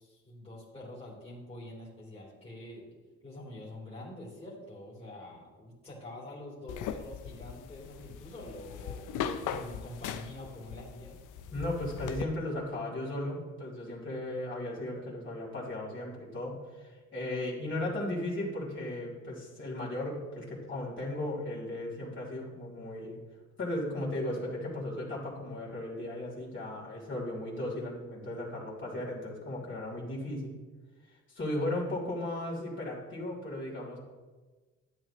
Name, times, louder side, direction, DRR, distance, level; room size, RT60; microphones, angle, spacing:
voice 1, 0.0-2.9 3.2-9.0 9.5-11.2, left 1 dB, 20° left, -6 dB, 3.0 m, -46 dB
sound 1, 6.7-12.2, left 8 dB, 85° left, 0.7 m, -39 dB
voice 2, 11.5-23.2 23.6-30.6 31.1-34.0, left 1 dB, 40° left, -4 dB, 3.2 m, -36 dB
11.0 x 9.0 x 3.0 m, 1.3 s
cardioid pair, 90°, 30 cm